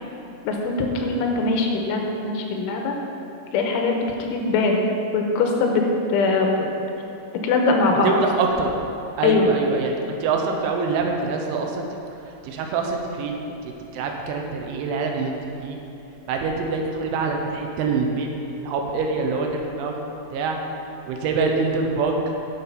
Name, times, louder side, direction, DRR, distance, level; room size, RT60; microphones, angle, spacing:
voice 1, 0.4-2.9 3.5-4.8 5.1-5.8 6.1-6.5 7.4-8.1 9.2-9.5, left 3 dB, 80° left, 1 dB, 3.4 m, -21 dB
voice 2, 8.0-8.8 9.2-11.9 12.4-15.8 16.3-20.0 20.3-20.6 21.1-22.2, right 4 dB, 80° right, 2 dB, 3.2 m, -25 dB
10.0 x 6.8 x 5.5 m, 2.8 s
omnidirectional pair, 5.5 m